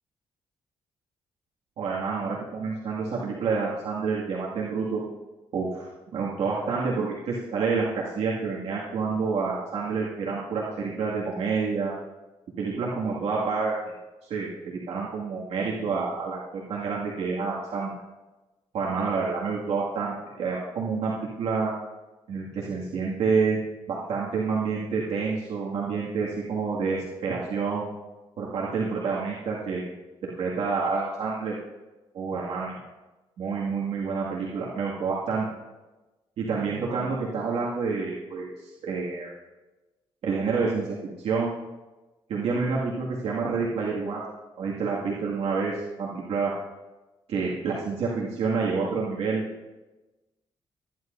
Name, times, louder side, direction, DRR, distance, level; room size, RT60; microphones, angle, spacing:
voice 1, 1.8-5.0 5.5-11.9 12.6-13.7 14.3-17.9 18.7-21.7 22.3-23.6 23.9-27.9 28.4-29.8 30.2-31.5 32.1-32.8 33.4-35.5 36.4-39.3 40.2-41.5 42.3-44.3 44.6-46.5 47.3-49.4, right 4 dB, 75° right, -5 dB, 2.1 m, -28 dB
25.0 x 11.0 x 2.6 m, 1.1 s
cardioid pair, 95°, 10 cm